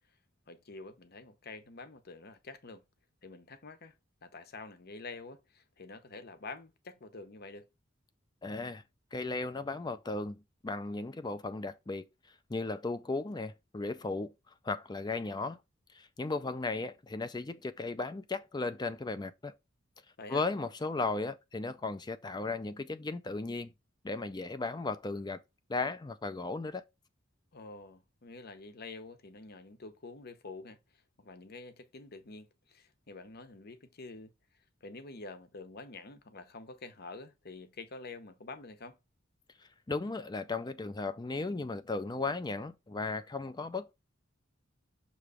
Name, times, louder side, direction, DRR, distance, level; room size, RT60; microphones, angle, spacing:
voice 1, 0.5-2.8 3.2-3.9 4.2-7.7 20.2-20.4 27.5-30.8 31.2-34.3 34.8-39.0, left 3 dB, 50° left, 0.8 m, -47 dB
voice 2, 8.4-8.8 9.1-12.1 12.5-14.3 14.6-15.6 15.9-19.5 20.3-23.7 24.0-25.4 25.7-26.8 39.9-43.9, left 3 dB, 20° left, 0.4 m, -36 dB
6.7 x 3.1 x 4.8 m
head